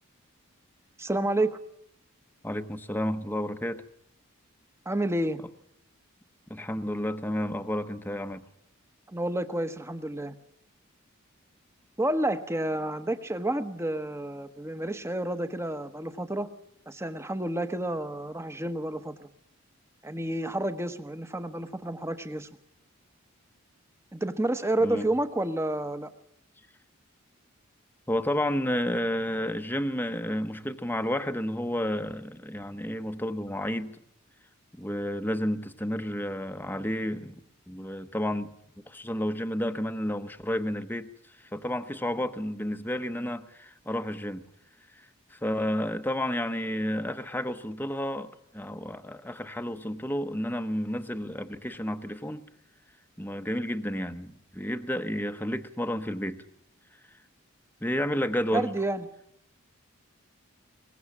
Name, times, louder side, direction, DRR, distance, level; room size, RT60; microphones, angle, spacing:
voice 1, 1.0-1.6 4.8-5.4 9.1-10.3 12.0-16.5 16.9-19.3 20.0-22.5 24.1-26.1 58.5-59.1, right 1 dB, 10° right, 1.1 m, -30 dB
voice 2, 2.4-3.8 6.5-8.5 24.8-25.1 28.1-34.0 34.7-37.4 37.7-38.5 38.9-41.1 41.4-44.5 45.0-52.5 53.2-56.4 57.8-58.7, equal, 10° left, 0.9 m, -31 dB
23.0 x 19.5 x 7.3 m
head